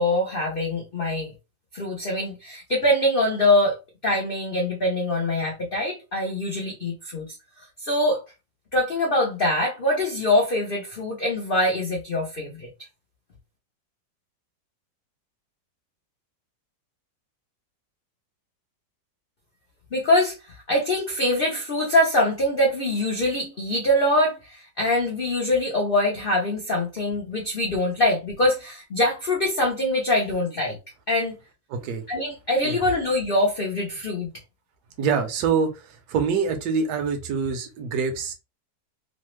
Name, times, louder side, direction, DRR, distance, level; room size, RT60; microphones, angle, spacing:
voice 1, 0.0-1.3 1.7-3.8 4.0-8.2 8.7-12.7 19.9-30.8 31.1-31.4 32.1-34.3, left 1 dB, 70° left, 0.5 m, -24 dB
voice 2, 31.7-32.0 32.6-32.8 35.0-38.3, right 5 dB, 70° right, 1.2 m, -25 dB
3.2 x 2.0 x 3.1 m
omnidirectional pair, 1.9 m